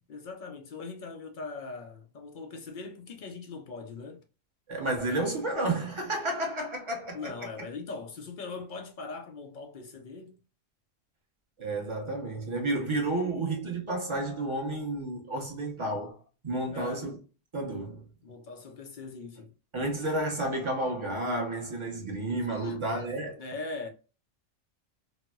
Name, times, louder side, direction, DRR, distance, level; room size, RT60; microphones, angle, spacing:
voice 1, 0.1-4.2 7.1-10.4 16.7-17.1 18.2-19.5 22.5-23.1 23.4-23.9, left 4 dB, 65° left, 0.5 m, -41 dB
voice 2, 4.7-7.5 11.6-16.2 16.4-17.2 17.5-18.1 19.7-23.4, right 2 dB, 30° right, 0.6 m, -31 dB
4.2 x 2.0 x 2.2 m
omnidirectional pair, 1.3 m